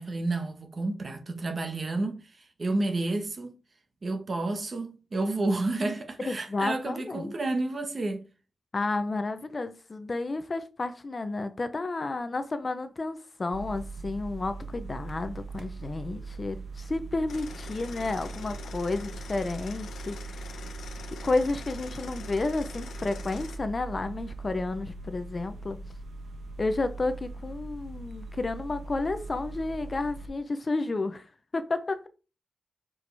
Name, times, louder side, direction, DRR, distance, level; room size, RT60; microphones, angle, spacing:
voice 1, 0.0-2.2 2.6-3.5 4.0-8.2, right 2 dB, 40° right, 1.3 m, -30 dB
voice 2, 6.3-7.3 8.7-20.7 21.2-25.8 26.6-31.3 31.5-32.1, left 3 dB, 35° left, 0.7 m, -31 dB
sound 1, 13.5-30.3, right 3 dB, 60° right, 1.0 m, -41 dB
sound 2, 17.3-23.6, left 5 dB, 90° left, 1.1 m, -45 dB
7.3 x 4.9 x 3.4 m
wide cardioid pair, 105°, 0 cm